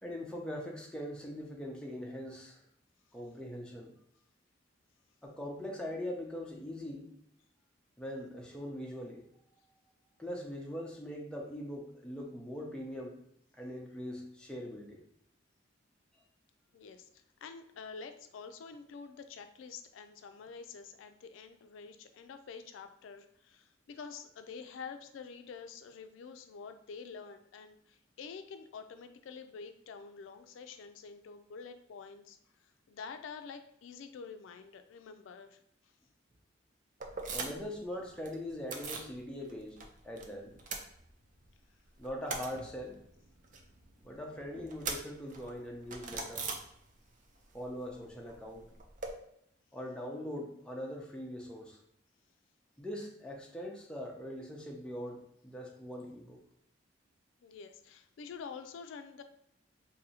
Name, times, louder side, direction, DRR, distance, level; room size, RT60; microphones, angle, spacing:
voice 1, 0.0-2.6 3.1-3.9 5.2-7.1 8.0-9.3 10.2-13.2 13.5-15.0 37.3-39.8 40.0-40.6 42.0-43.0 44.0-46.5 47.5-48.7 49.7-51.8 52.8-56.4, equal, 5° left, -1 dB, 0.6 m, -41 dB
voice 2, 16.7-35.9 57.4-59.2, left 5 dB, 85° left, 8 dB, 0.3 m, -48 dB
sound 1, 37.0-37.8 38.0-39.1 39.5-40.3 40.5-41.5 41.8-47.2 47.5-49.1, right 4 dB, 40° right, 0.5 m, -42 dB
2.7 x 2.7 x 4.2 m, 0.73 s
head